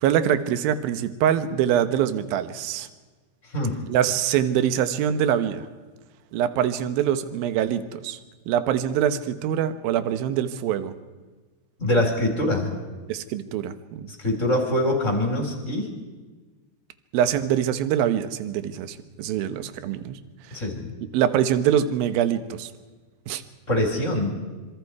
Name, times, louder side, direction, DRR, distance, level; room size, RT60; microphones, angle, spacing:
voice 1, 0.0-2.9 3.9-5.7 6.3-8.2 8.5-10.9 13.1-14.1 17.1-20.2 20.5-20.6 21.1-22.7 23.3-23.4, right 10 dB, 70° right, 11 dB, 2.5 m, -24 dB
voice 2, 11.8-12.8 14.2-15.9 20.5-20.9 23.7-24.4, left 1 dB, 15° left, 2 dB, 3.8 m, -24 dB
26.5 x 25.5 x 4.8 m, 1.3 s
omnidirectional pair, 5.1 m